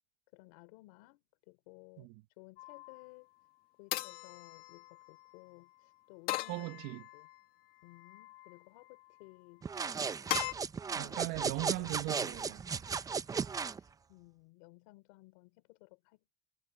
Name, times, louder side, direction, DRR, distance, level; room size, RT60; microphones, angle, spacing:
voice 1, 0.3-2.1 2.4-3.3 3.8-6.7 7.1-7.3 7.8-9.7 11.0-11.2 11.8-11.9 13.7-16.3, left 25 dB, 85° left, 3.6 m, -57 dB
sound 1, 2.6-3.1 3.9-5.3 6.3-7.4 7.9-8.6 10.3-10.5, left 18 dB, 65° left, 1.9 m, -39 dB
voice 2, 6.5-7.0 10.9-12.8, right 20 dB, 75° right, 1.9 m, -39 dB
sound 2, 9.6-13.8, right 5 dB, 20° right, 0.8 m, -36 dB
supercardioid pair, 120°, 17 cm